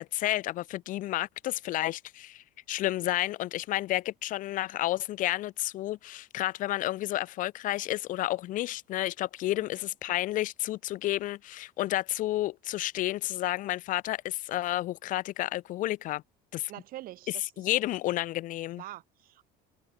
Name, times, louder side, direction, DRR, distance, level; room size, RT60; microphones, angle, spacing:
voice 1, 0.0-16.2 16.5-16.7 17.3-18.8, left 15 dB, 45° left, 0.6 m, -31 dB
voice 2, 16.7-17.5 18.8-19.4, right 15 dB, 50° right, 2.8 m, -44 dB
cardioid pair, 150°, 19 cm